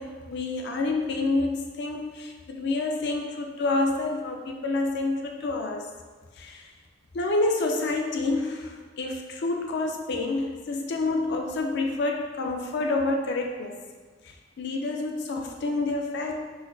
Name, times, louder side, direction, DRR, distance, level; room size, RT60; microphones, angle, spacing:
voice 1, 0.0-5.9 6.4-6.7 7.1-13.8 14.2-16.4, left 2 dB, 60° left, 2 dB, 0.4 m, -28 dB
4.1 x 2.5 x 2.3 m, 1.4 s
head